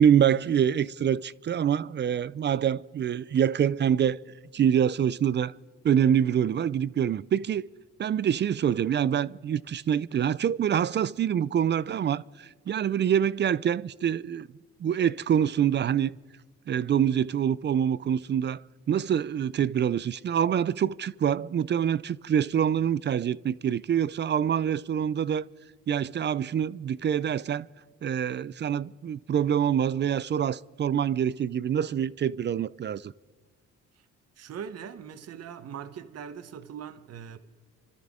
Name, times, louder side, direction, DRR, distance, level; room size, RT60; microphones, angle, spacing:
voice 1, 0.0-4.2 4.5-5.5 5.8-7.6 8.0-14.5 14.8-16.2 16.7-25.5 25.9-27.7 28.0-33.1, right 9 dB, 40° right, 0.4 m, -25 dB
voice 2, 34.4-37.4, right 8 dB, 55° right, 1.0 m, -41 dB
27.5 x 13.0 x 3.6 m
cardioid pair, 90°, 30 cm